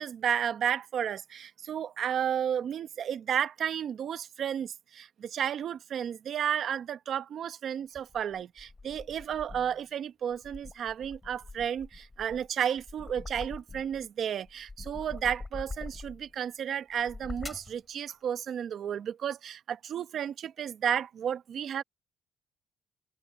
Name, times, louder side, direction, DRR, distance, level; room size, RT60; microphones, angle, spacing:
voice 1, 0.0-21.8, right 9 dB, 60° right, 1.1 m, -32 dB
sound 1, 7.9-9.8 10.3-14.1 14.4-16.3 16.9-17.8, left 3 dB, 20° left, 5.2 m, -44 dB
cardioid pair, 105°, 0 cm